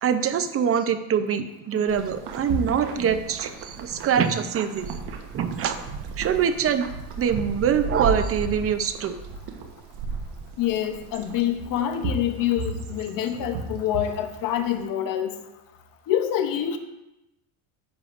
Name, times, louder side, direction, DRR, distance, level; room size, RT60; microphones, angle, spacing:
voice 1, 0.0-5.0 5.3-5.8 6.2-6.9 7.2-9.2, right 7 dB, 30° right, 10 dB, 0.5 m, -24 dB
sound 1, 1.9-14.8, right 4 dB, 65° right, 1.2 m, -34 dB
voice 2, 10.6-15.3 16.1-16.8, left 10 dB, 50° left, 7 dB, 0.8 m, -26 dB
10.5 x 7.4 x 2.5 m, 0.93 s
cardioid pair, 135°, 44 cm